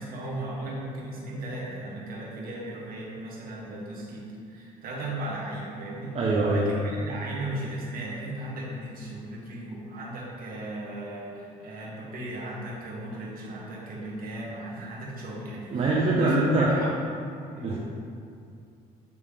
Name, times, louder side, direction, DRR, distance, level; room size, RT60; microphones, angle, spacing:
voice 1, 0.0-16.9 17.5-17.8, right 1 dB, 60° right, -4 dB, 1.5 m, -36 dB
voice 2, 6.1-6.8 15.7-16.7 17.6-17.8, right 2 dB, 40° right, -6 dB, 0.9 m, -23 dB
8.7 x 3.1 x 3.6 m, 2.4 s
cardioid pair, 110°, 17 cm